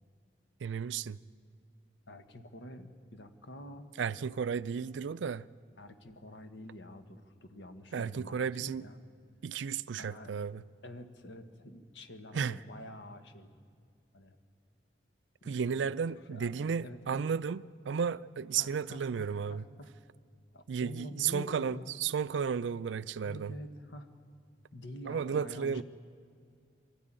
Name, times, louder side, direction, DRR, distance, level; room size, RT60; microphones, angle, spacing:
voice 1, 0.6-1.2 4.0-5.5 7.9-8.9 9.4-10.6 12.3-12.6 15.4-19.7 20.7-23.5 25.1-25.8, right 6 dB, 90° right, 0.4 m, -33 dB
voice 2, 2.1-3.9 5.8-9.0 10.0-10.3 10.8-13.5 14.1-14.4 15.4-17.2 18.6-19.9 20.5-21.9 23.2-24.1 24.7-25.8, left 1 dB, 85° left, 1.4 m, -47 dB
23.5 x 12.5 x 8.9 m
head